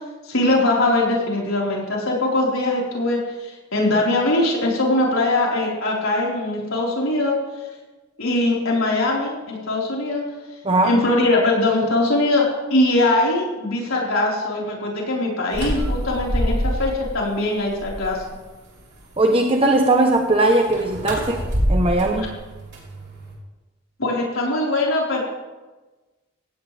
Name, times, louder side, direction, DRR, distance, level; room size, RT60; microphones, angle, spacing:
voice 1, 0.3-7.3 8.2-10.2 10.8-18.2 24.0-25.2, left 2 dB, 80° left, -3 dB, 4.6 m, -21 dB
voice 2, 10.6-11.0 19.2-21.4 21.7-22.4, right 2 dB, 25° right, 3 dB, 1.0 m, -19 dB
sound 1, 15.5-17.1 17.5-18.3 20.5-23.3, equal, 55° right, 4.1 m, -26 dB
17.0 x 16.0 x 3.5 m, 1.2 s
head